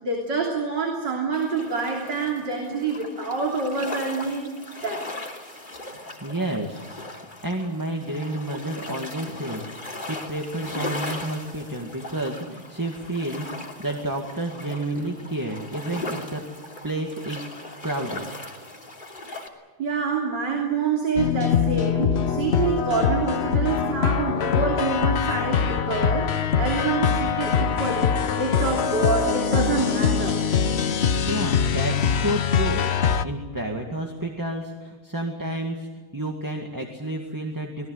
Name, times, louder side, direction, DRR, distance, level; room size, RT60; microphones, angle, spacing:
voice 1, 0.0-4.6 4.8-5.1 19.8-30.4, right 4 dB, 55° right, 0 dB, 3.8 m, -27 dB
sound 1, 1.3-19.5, left 2 dB, 20° left, 3.2 m, -38 dB
voice 2, 6.2-7.0 7.4-16.5 16.8-17.5 17.8-18.3 31.3-32.9 33.2-37.9, right 1 dB, 10° right, 2 dB, 1.8 m, -30 dB
sound 2, 21.2-33.2, left 7 dB, 70° left, 0.6 m, -23 dB
26.0 x 19.0 x 8.0 m, 1.4 s
omnidirectional pair, 2.3 m